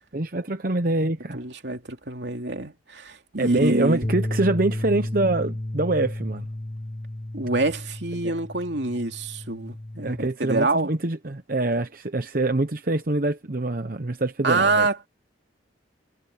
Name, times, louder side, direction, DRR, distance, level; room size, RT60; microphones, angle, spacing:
voice 1, 0.1-1.4 3.4-6.5 8.2-8.3 10.0-14.9, right 2 dB, 45° right, 0.9 m, -25 dB
voice 2, 1.3-4.1 7.3-10.9 14.4-15.1, right 2 dB, 65° right, 2.9 m, -26 dB
Bass guitar, 4.0-10.3, left 1 dB, 25° left, 1.2 m, -32 dB
head